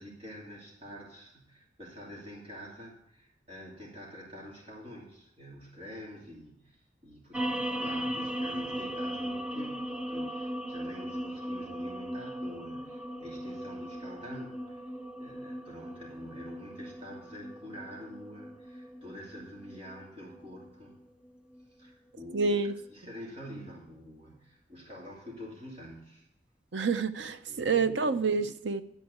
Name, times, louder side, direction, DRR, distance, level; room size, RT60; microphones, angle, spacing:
voice 1, 0.0-14.8 15.2-21.0 21.8-22.5 22.9-26.2 27.5-28.0, equal, 35° right, 2.8 m, -47 dB
sound 1, 7.3-21.9, equal, 5° right, 0.5 m, -38 dB
voice 2, 22.3-22.7 26.7-28.8, right 4 dB, 90° right, 0.7 m, -28 dB
12.0 x 4.5 x 8.2 m
head